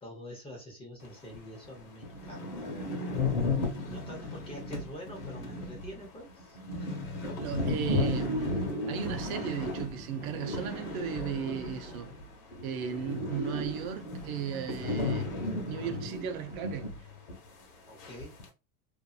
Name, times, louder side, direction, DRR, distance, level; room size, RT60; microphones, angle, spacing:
voice 1, 0.0-3.0 3.8-6.6 17.9-18.4, left 1 dB, 15° left, 0.7 m, -46 dB
sound 1, 1.3-1.4 1.8-1.9 2.0-12.3 12.5-17.0 17.3-17.4 18.0-18.5, left 2 dB, 55° left, 1.1 m, -34 dB
voice 2, 7.4-12.1 12.6-15.4 15.7-17.0, right 8 dB, 70° right, 0.7 m, -36 dB
sound 2, 7.7-13.0 13.5-13.7, right 1 dB, 25° right, 0.5 m, -53 dB
2.6 x 2.6 x 2.3 m
supercardioid pair, 150°, 44 cm